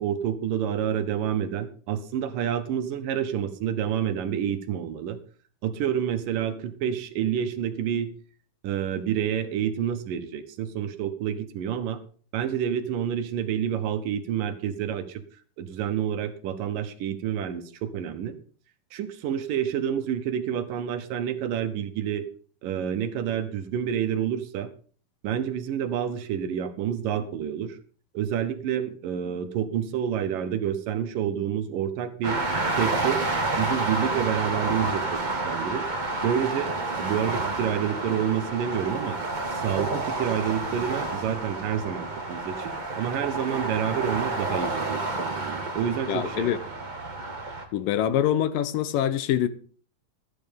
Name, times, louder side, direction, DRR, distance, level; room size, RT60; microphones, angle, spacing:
voice 1, 0.0-5.2 5.6-8.1 8.6-12.0 12.3-15.2 15.6-18.4 18.9-22.3 22.6-24.7 25.2-27.8 28.1-32.4 32.7-33.2 33.6-35.9 36.2-39.2 39.5-46.6, right 9 dB, 75° right, 2.8 m, -28 dB
sound 1, 32.2-47.6, right 2 dB, 30° right, 0.8 m, -30 dB
voice 2, 46.1-46.6 47.7-49.5, left 10 dB, 80° left, 2.6 m, -24 dB
13.5 x 10.0 x 5.3 m
omnidirectional pair, 4.0 m